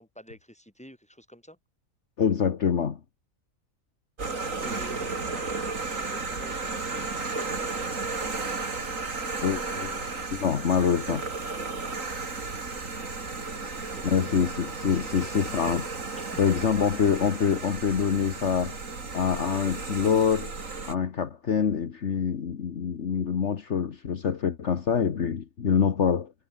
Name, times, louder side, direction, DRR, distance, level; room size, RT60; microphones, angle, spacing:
voice 1, 0.0-1.6 4.6-7.9 11.1-11.2 11.6-11.8 13.7-14.3 15.1-15.5 16.1-16.4, equal, 5° left, 6.2 m, -48 dB
voice 2, 2.2-3.0 9.4-10.0 10.3-11.2 14.0-15.9 16.4-18.8 19.1-20.5 20.9-26.3, left 7 dB, 60° left, 1.5 m, -25 dB
sound 1, 4.2-20.9, right 3 dB, 70° right, 3.4 m, -34 dB
omnidirectional pair, 1.4 m